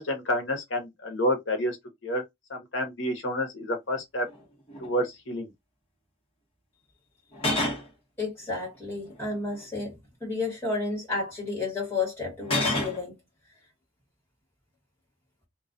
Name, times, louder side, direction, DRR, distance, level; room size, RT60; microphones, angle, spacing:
voice 1, 0.0-1.8 2.0-2.2 2.5-4.3 4.8-5.5, equal, 65° left, 0.9 m, -29 dB
sound 1, 4.3-4.4 4.7-4.9 7.3-7.9 9.1-9.6 12.4-13.0, left 2 dB, 30° left, 0.9 m, -28 dB
voice 2, 8.2-9.9 10.2-13.2, left 3 dB, 10° left, 1.2 m, -31 dB
2.3 x 2.2 x 2.5 m
head